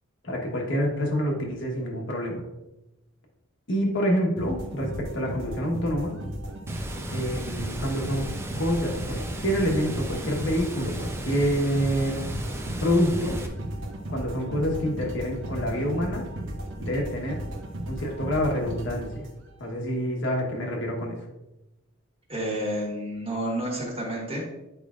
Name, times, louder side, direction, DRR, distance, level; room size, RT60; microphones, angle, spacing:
voice 1, 0.2-2.4 3.7-6.1 7.1-8.3 8.6-12.2 12.8-13.4 14.1-16.2 16.8-17.4 17.9-19.3 19.6-21.2, equal, 60° left, -1 dB, 1.2 m, -27 dB
sound 1, 4.4-19.6, right 1 dB, 65° right, 0.9 m, -35 dB
Water, 6.7-13.5, right 1 dB, 10° right, 0.5 m, -35 dB
voice 2, 22.3-24.4, right 1 dB, 30° right, -3 dB, 1.7 m, -30 dB
8.2 x 4.9 x 2.5 m, 0.97 s
head